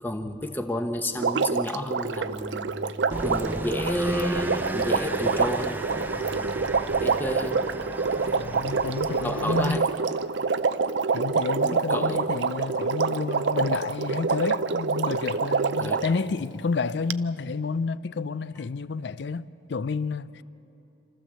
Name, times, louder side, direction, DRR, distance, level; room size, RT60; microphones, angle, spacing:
voice 1, 0.0-2.7 3.1-5.8 7.0-8.3 9.2-10.0 11.6-12.2 15.8-16.0, left 1 dB, 10° left, 0.9 m, -31 dB
Water, 1.2-16.2 17.1-17.2, right 4 dB, 75° right, 0.5 m, -26 dB
sound 1, 3.1-9.8, right 1 dB, 10° right, 0.5 m, -35 dB
voice 2, 8.3-9.9 11.1-20.4, left 4 dB, 70° left, 0.5 m, -30 dB
28.0 x 14.0 x 7.4 m
head